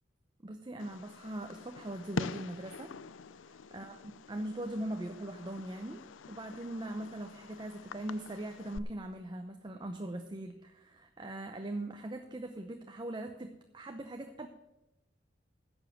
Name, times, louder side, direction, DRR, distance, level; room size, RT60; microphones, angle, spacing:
voice 1, 0.4-2.9 3.7-6.0 6.3-14.5, right 1 dB, 25° right, 5 dB, 0.7 m, -41 dB
Fireworks, 0.8-8.8, left 5 dB, 90° left, 0.5 m, -45 dB
11.0 x 7.1 x 7.8 m, 0.93 s
head